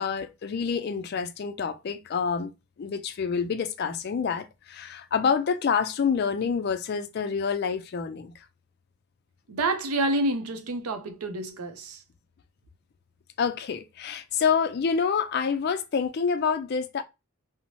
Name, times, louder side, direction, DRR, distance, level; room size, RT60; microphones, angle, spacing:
voice 1, 0.0-2.5 2.8-8.3 13.4-17.0, left 6 dB, 50° left, 0.3 m, -27 dB
voice 2, 9.5-12.0, right 2 dB, 85° right, 0.5 m, -28 dB
2.7 x 2.0 x 2.9 m
head